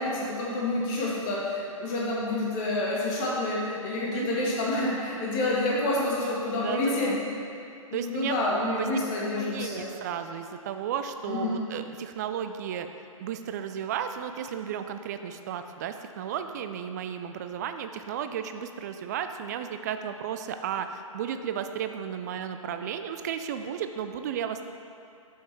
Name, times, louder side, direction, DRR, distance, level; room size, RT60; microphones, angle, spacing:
voice 1, 0.0-7.2 7.9-9.9 11.3-11.6, left 2 dB, 30° left, -5 dB, 1.6 m, -28 dB
voice 2, 4.1-4.6 6.5-7.2 7.9-8.9 9.4-12.9 13.2-24.6, right 8 dB, 30° right, 8 dB, 0.3 m, -34 dB
6.2 x 5.9 x 4.5 m, 2.5 s
figure-of-eight pair, 125°, 18 cm